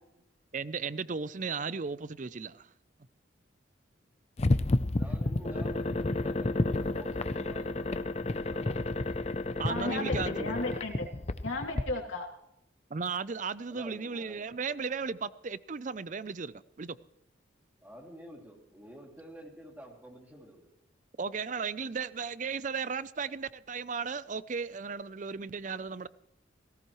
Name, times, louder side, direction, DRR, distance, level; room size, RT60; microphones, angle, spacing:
voice 1, 0.5-2.7 9.6-10.5 12.9-17.0 21.2-26.1, right 5 dB, 40° right, 0.5 m, -35 dB
sound 1, 4.4-11.8, left 2 dB, 35° left, 0.6 m, -31 dB
voice 2, 5.0-8.9 13.7-14.4 17.8-20.7, equal, 10° right, 2.7 m, -50 dB
voice 3, 9.7-11.1 11.4-12.3, left 2 dB, 85° left, 2.8 m, -34 dB
17.5 x 17.5 x 3.1 m
head